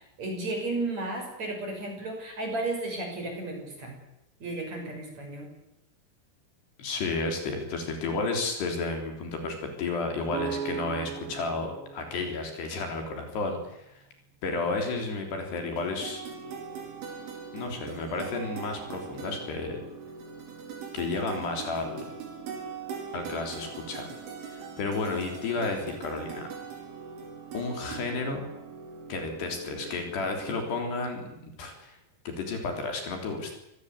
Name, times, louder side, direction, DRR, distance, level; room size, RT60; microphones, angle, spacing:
voice 1, 0.0-3.9 4.4-5.5, right 2 dB, 35° right, 2 dB, 7.4 m, -33 dB
voice 2, 6.8-14.0 14.4-16.2 17.5-19.8 20.9-22.0 23.1-24.0 24.5-26.5 27.5-28.4 29.1-32.0 32.3-33.5, left 3 dB, 60° left, 4 dB, 5.7 m, -32 dB
sound 1, 10.3-14.1, right 6 dB, 50° right, 4.7 m, -39 dB
sound 2, 15.6-30.8, right 6 dB, 85° right, 7.0 m, -41 dB
25.5 x 19.5 x 8.3 m, 0.87 s
omnidirectional pair, 5.4 m